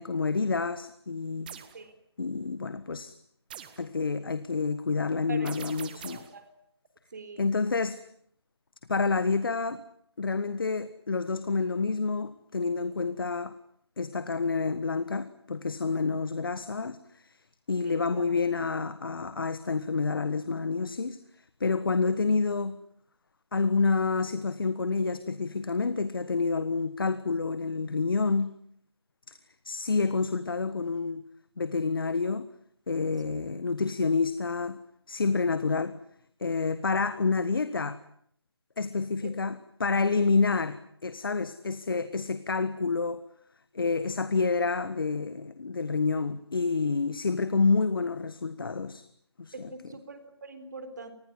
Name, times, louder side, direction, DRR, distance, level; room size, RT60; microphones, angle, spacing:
voice 1, 0.0-1.5 2.2-3.1 3.8-6.2 7.4-8.0 8.9-9.8 10.2-13.5 14.0-17.4 17.7-21.2 21.6-22.8 23.5-28.5 29.6-31.2 31.6-32.5 32.9-34.8 35.1-36.0 36.4-38.0 38.8-43.2 43.7-49.0 49.4-49.7, left 4 dB, 55° left, 13 dB, 1.4 m, -28 dB
sound 1, 1.5-1.8 3.5-3.9 5.5-6.4, right 9 dB, 20° right, 1.5 m, -43 dB
voice 2, 6.0-6.5 7.1-7.5 17.8-18.3 33.3-33.4 39.2-39.3 49.5-51.1, right 3 dB, 40° right, 10 dB, 3.9 m, -43 dB
27.0 x 20.5 x 9.5 m, 0.67 s
figure-of-eight pair, 165°, 14 cm